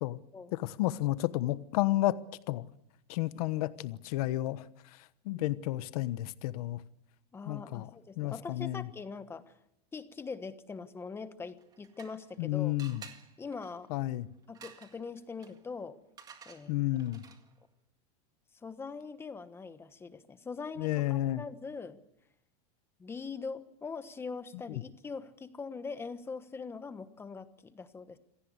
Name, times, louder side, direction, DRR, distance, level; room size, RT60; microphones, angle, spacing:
voice 1, 0.5-2.2 2.5-2.7 3.1-4.6 5.2-6.8 7.5-7.9 8.2-8.9 12.4-13.0 13.9-14.3 16.7-17.2 20.8-21.4, left 16 dB, 60° left, 15 dB, 1.2 m, -31 dB
voice 2, 7.3-9.5 9.9-12.8 13.4-13.9 14.5-16.0 16.4-16.8 18.5-22.0 23.0-28.2, left 4 dB, 10° left, 12 dB, 1.2 m, -42 dB
sound 1, 11.5-12.4 12.8-17.6, right 6 dB, 20° right, 1.9 m, -54 dB
27.0 x 17.5 x 8.2 m, 0.80 s
supercardioid pair, 165°, 21 cm